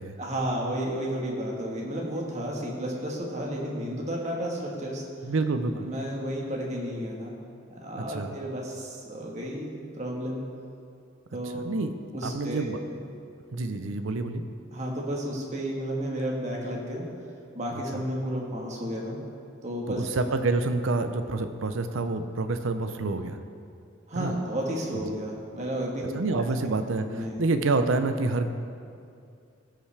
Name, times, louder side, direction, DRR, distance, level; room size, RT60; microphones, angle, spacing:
voice 1, 0.2-5.0 5.8-7.3 7.7-10.4 11.3-11.6 12.1-12.7 12.9-13.0 14.7-17.1 17.5-19.2 19.6-20.2 24.1-26.4 27.1-27.4, equal, 35° right, -2 dB, 1.4 m, -32 dB
voice 2, 5.2-5.9 7.9-8.3 11.6-11.9 12.2-12.8 13.5-14.4 17.9-18.0 19.9-23.4 24.1-24.3 25.1-25.2 26.1-28.5, right 3 dB, 70° right, 8 dB, 0.6 m, -28 dB
16.5 x 5.6 x 3.4 m, 2.4 s
head